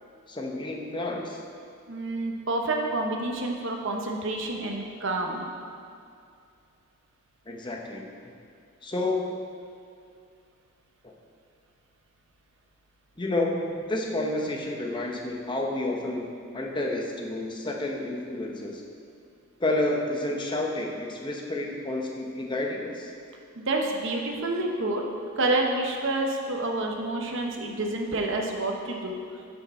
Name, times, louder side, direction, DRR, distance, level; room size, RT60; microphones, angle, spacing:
voice 1, 0.3-1.4 7.5-8.3 8.8-9.4 11.0-11.1 13.2-16.3 16.5-18.8 19.6-23.1, left 2 dB, 20° left, 0 dB, 0.9 m, -30 dB
voice 2, 1.9-5.5 23.6-25.0 25.4-29.1, right 2 dB, 60° right, 1 dB, 1.0 m, -28 dB
10.0 x 5.7 x 4.4 m, 2.4 s
head